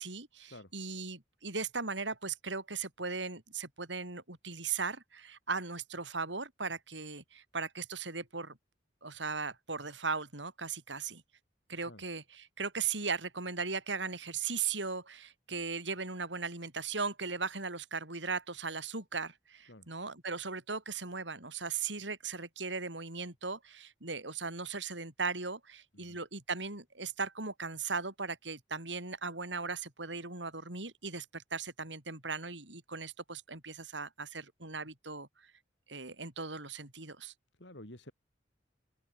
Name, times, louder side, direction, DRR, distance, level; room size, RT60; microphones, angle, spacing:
voice 1, 0.0-8.6 9.0-11.2 11.7-35.3 35.9-37.3, right 4 dB, 80° right, 7.3 m, -38 dB
voice 2, 37.6-38.1, left 1 dB, 70° left, 6.5 m, -51 dB
open air
head